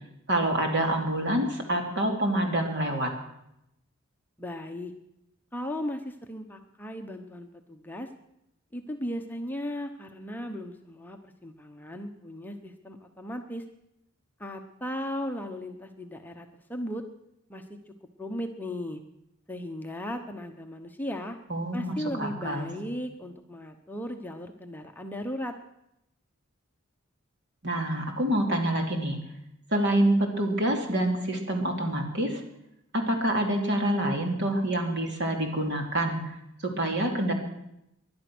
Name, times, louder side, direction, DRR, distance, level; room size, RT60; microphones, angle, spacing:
voice 1, 0.3-3.1 21.5-22.7 27.6-29.2 29.7-32.4 32.9-36.3 36.6-37.3, right 1 dB, 55° right, 2 dB, 3.0 m, -27 dB
voice 2, 4.4-4.9 5.5-8.1 8.7-13.6 14.4-17.0 17.5-17.8 18.2-19.0 19.5-21.4 21.7-25.5, equal, 10° left, 4 dB, 1.0 m, -36 dB
21.0 x 11.5 x 6.2 m, 0.83 s
head